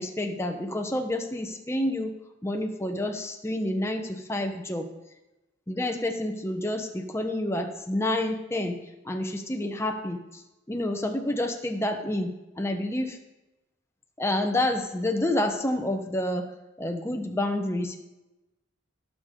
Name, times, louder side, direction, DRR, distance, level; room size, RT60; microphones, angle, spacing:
voice 1, 0.0-2.1 2.4-4.9 5.7-8.8 9.0-10.4 10.7-13.2 14.2-16.5 16.8-18.0, left 1 dB, 10° left, 4 dB, 0.8 m, -29 dB
17.0 x 6.7 x 3.7 m, 0.99 s
head